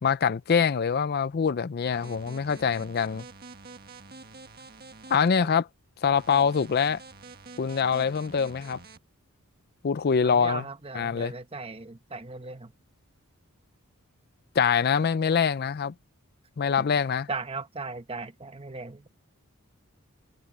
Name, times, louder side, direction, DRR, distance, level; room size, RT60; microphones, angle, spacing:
voice 1, 0.0-3.2 5.1-5.6 6.0-7.0 7.6-8.8 9.8-10.6 10.9-11.3 14.6-15.9 16.6-17.3, left 6 dB, 45° left, 0.4 m, -24 dB
sound 1, 1.9-5.3 6.2-9.0, right 3 dB, 45° right, 1.6 m, -47 dB
voice 2, 10.2-12.7 17.3-19.1, right 3 dB, 25° right, 0.9 m, -37 dB
head